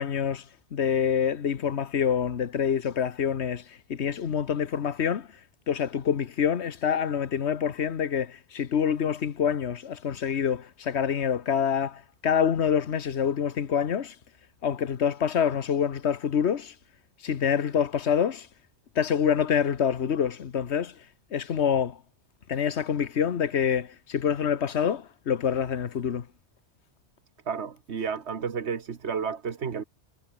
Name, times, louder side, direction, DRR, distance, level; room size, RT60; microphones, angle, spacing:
voice 1, 0.0-5.3 5.7-14.2 14.6-16.7 17.2-18.5 18.9-21.1 21.3-22.0 22.5-26.3, left 7 dB, 70° left, 1.4 m, -26 dB
voice 2, 27.5-29.8, right 6 dB, 70° right, 1.6 m, -31 dB
omnidirectional pair, 1.2 m